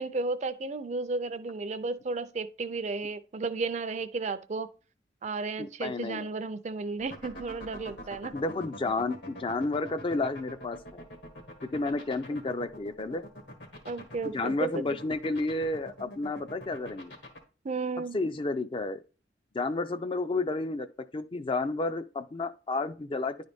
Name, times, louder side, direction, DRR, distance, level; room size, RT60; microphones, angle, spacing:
voice 1, 0.0-4.7 5.2-8.3 13.8-14.8 17.6-18.2, right 3 dB, 40° right, 0.5 m, -33 dB
voice 2, 5.6-6.3 8.3-11.1 11.7-13.2 14.3-17.1 18.1-19.0 19.5-20.9 21.1-23.4, left 2 dB, 30° left, 0.4 m, -31 dB
sound 1, 7.0-17.4, equal, 75° left, 1.7 m, -43 dB
10.0 x 3.9 x 3.5 m
head